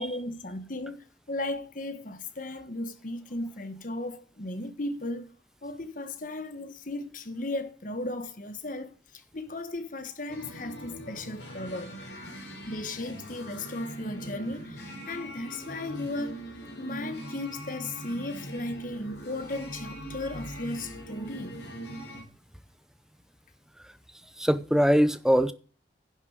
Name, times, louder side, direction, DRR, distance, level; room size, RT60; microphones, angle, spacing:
voice 1, 0.0-5.3 5.6-8.9 9.3-11.9 12.6-16.5 16.8-21.6, left 2 dB, 45° left, 1.3 m, -36 dB
sound 1, 10.3-22.2, right 1 dB, 65° left, 3.8 m, -41 dB
voice 2, 24.4-25.5, equal, 5° right, 0.6 m, -22 dB
10.5 x 6.5 x 6.4 m
head